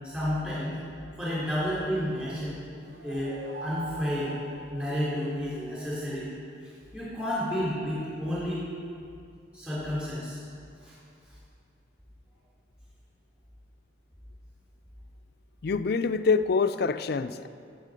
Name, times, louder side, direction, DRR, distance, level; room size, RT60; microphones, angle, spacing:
voice 1, 0.0-0.8 1.2-2.6 3.0-3.4 3.6-4.3 4.7-6.3 6.9-8.6 9.5-10.4 10.8-10.9, equal, 5° right, -9 dB, 3.8 m, -31 dB
sound 1, 2.7-5.6, right 2 dB, 80° right, 1.9 m, -42 dB
voice 2, 15.6-17.5, left 4 dB, 55° left, 11 dB, 0.4 m, -25 dB
16.5 x 8.3 x 5.2 m, 2.4 s
head